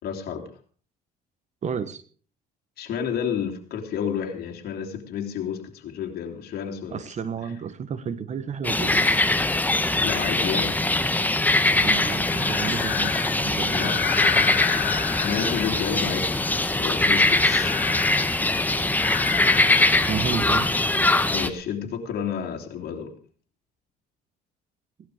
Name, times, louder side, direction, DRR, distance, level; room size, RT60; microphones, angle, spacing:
voice 1, 0.0-0.5 2.8-7.0 7.4-7.5 10.0-10.8 13.7-14.0 15.2-16.4 16.7-17.7 21.3-23.1, left 8 dB, 65° left, 3 dB, 3.3 m, -30 dB
voice 2, 1.6-2.0 6.9-9.2 11.8-13.1 13.4-14.5 15.3-15.4 20.1-20.8, right 7 dB, 45° right, 14 dB, 1.4 m, -32 dB
sound 1, 8.6-21.5, left 2 dB, 10° left, 1.3 m, -22 dB
Breathing, 11.7-20.7, left 12 dB, 90° left, 1.9 m, -33 dB
17.5 x 12.0 x 5.0 m, 0.42 s
cardioid pair, 110°, 17 cm